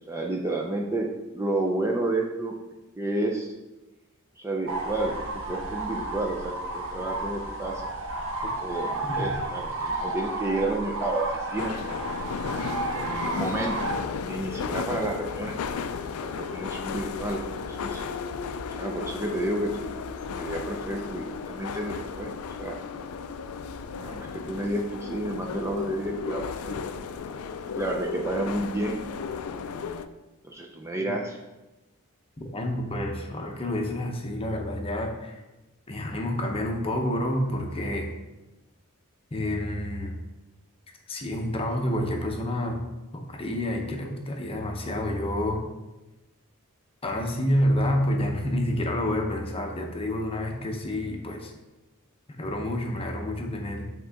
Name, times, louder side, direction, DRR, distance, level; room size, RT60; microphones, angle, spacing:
voice 1, 0.1-2.5 3.0-3.5 4.4-7.8 8.6-11.8 12.9-13.8 14.2-15.5 16.2-17.4 17.7-18.0 18.7-19.9 20.4-22.3 22.6-22.8 24.0-26.8 27.7-29.0 30.4-31.4, right 2 dB, 10° right, 0 dB, 0.4 m, -30 dB
sound 1, 4.7-14.0, right 2 dB, 60° right, 0.8 m, -32 dB
voice 2, 9.0-9.3 31.0-31.1 32.4-35.4 35.9-38.1 39.3-40.2 41.1-42.8 43.1-45.6 47.0-51.5 52.4-53.9, left 1 dB, 25° left, 2 dB, 0.7 m, -28 dB
sound 2, 11.6-30.1, left 5 dB, 70° left, 0.4 m, -34 dB
7.7 x 3.7 x 3.5 m, 1.1 s
head